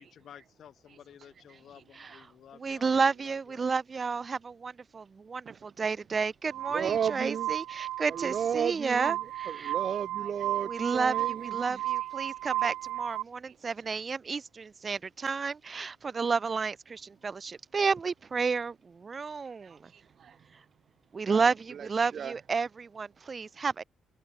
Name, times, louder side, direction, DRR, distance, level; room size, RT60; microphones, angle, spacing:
voice 1, 0.0-3.7 17.2-17.3, left 9 dB, 65° left, 4.2 m, -53 dB
voice 2, 2.6-9.7 10.7-11.1 11.5-18.8 19.0-19.9 21.1-23.8, right 5 dB, 35° right, 2.1 m, -31 dB
Glass, 6.5-13.2, right 14 dB, 85° right, 0.3 m, -34 dB
voice 3, 6.7-7.5 8.1-12.3 12.6-12.7 13.4-13.9 19.6-20.6 21.3-22.4, right 8 dB, 55° right, 2.6 m, -35 dB
cardioid pair, 90°, 0 cm